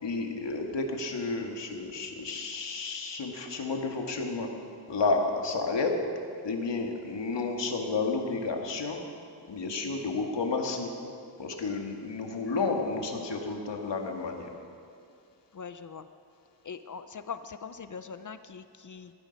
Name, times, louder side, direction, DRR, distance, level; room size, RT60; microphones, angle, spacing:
voice 1, 0.0-4.5 4.9-5.9 6.4-9.0 9.5-10.9 11.4-14.5, left 3 dB, 85° left, 2 dB, 1.9 m, -31 dB
voice 2, 15.5-16.1 16.6-19.1, left 6 dB, 45° left, 11 dB, 0.5 m, -41 dB
18.5 x 14.0 x 5.3 m, 2.4 s
wide cardioid pair, 155°, 42 cm